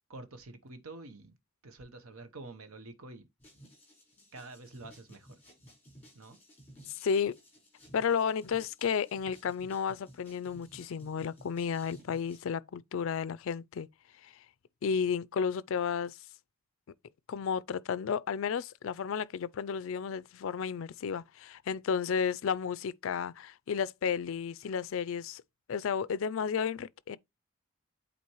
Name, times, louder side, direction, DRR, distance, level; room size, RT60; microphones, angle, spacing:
voice 1, 0.1-1.4 1.6-3.3 4.3-5.4 6.1-6.4, right 2 dB, 75° right, 0.9 m, -48 dB
sound 1, 3.4-12.4, equal, 10° left, 4.4 m, -57 dB
voice 2, 6.9-7.4 7.9-13.9 14.2-14.3 14.8-16.2 17.3-25.4 25.7-27.2, left 6 dB, 65° left, 0.3 m, -32 dB
8.5 x 4.1 x 3.0 m
head